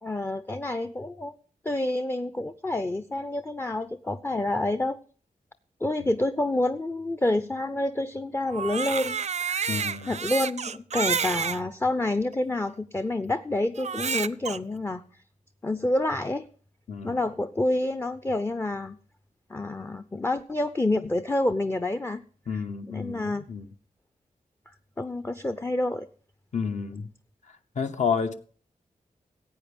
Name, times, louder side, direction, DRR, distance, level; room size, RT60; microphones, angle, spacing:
voice 1, 0.0-1.3 1.6-5.0 5.8-9.2 9.4-9.7 10.1-15.0 15.6-16.5 17.0-19.0 19.5-22.2 22.5-22.6 22.9-23.4 25.0-26.1, left 2 dB, 15° left, 0.5 m, -28 dB
Crying sobbing, 8.5-11.6 12.3-12.4 13.8-14.6, right 6 dB, 55° right, 0.5 m, -29 dB
voice 2, 9.7-10.1 16.9-17.2 22.5-23.7 26.5-27.1 27.8-28.3, left 6 dB, 55° left, 0.9 m, -30 dB
16.0 x 8.7 x 5.2 m
wide cardioid pair, 140°, 14 cm